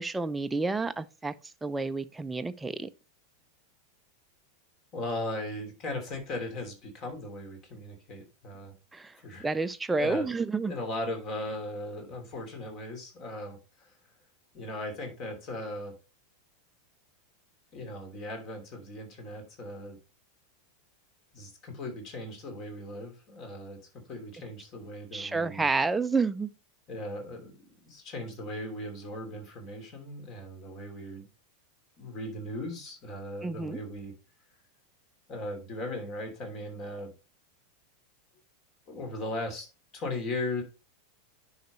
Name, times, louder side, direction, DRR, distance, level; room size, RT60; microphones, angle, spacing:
voice 1, 0.0-2.9 8.9-9.2 9.4-10.7 25.1-26.5 33.4-33.8, right 3 dB, 10° right, 0.5 m, -30 dB
voice 2, 4.9-8.7 9.2-9.5 10.0-10.3 10.7-13.9 14.5-15.9 17.7-20.0 21.3-25.7 26.9-27.5 27.8-31.3 32.0-34.1 35.3-37.1 38.9-39.7 39.9-40.6, left 1 dB, 40° left, 3.1 m, -38 dB
10.0 x 5.6 x 3.1 m
figure-of-eight pair, 85°, 0 cm